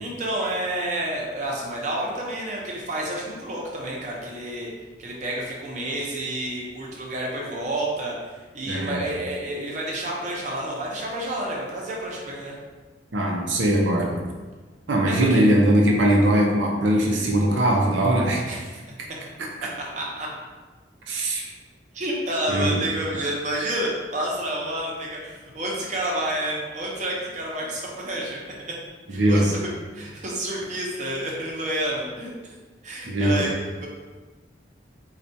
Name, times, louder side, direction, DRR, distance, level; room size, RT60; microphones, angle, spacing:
voice 1, 0.0-4.7 5.0-12.6 15.1-15.4 18.5-18.7 19.9-20.3 21.9-28.4 29.1-29.6 29.9-32.3 32.8-33.5 33.8-33.9, right 1 dB, 40° right, -3 dB, 0.7 m, -29 dB
voice 2, 8.7-9.0 13.1-14.2 14.9-18.6 21.1-21.5 22.5-22.8 29.1-29.5 33.1-33.4, right 1 dB, 80° right, -1 dB, 0.6 m, -20 dB
4.4 x 2.3 x 2.7 m, 1.3 s
head